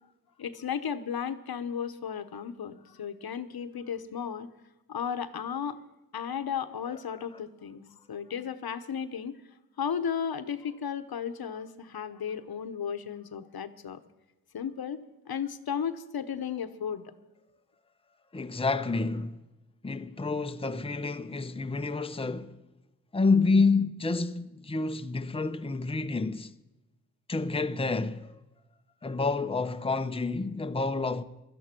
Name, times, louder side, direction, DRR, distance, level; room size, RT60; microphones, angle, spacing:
voice 1, 0.4-4.5 4.9-5.8 6.1-7.8 8.1-9.4 9.8-14.0 14.5-15.0 15.3-17.1, left 7 dB, 85° left, 1.1 m, -34 dB
voice 2, 18.3-19.4 19.8-22.6 23.1-26.6 27.3-28.4 29.0-31.2, left 3 dB, 15° left, 0.7 m, -28 dB
16.5 x 12.5 x 6.0 m
wide cardioid pair, 100°, 36 cm